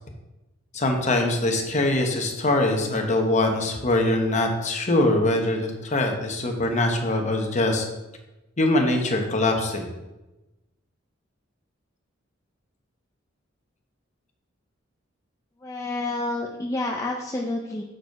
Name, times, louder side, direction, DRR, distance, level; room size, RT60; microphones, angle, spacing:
voice 1, 0.7-7.9 8.6-9.9, left 2 dB, 35° left, 3 dB, 1.0 m, -23 dB
voice 2, 15.6-17.8, left 2 dB, 15° left, -1 dB, 0.5 m, -29 dB
6.3 x 5.1 x 4.6 m, 1.0 s
head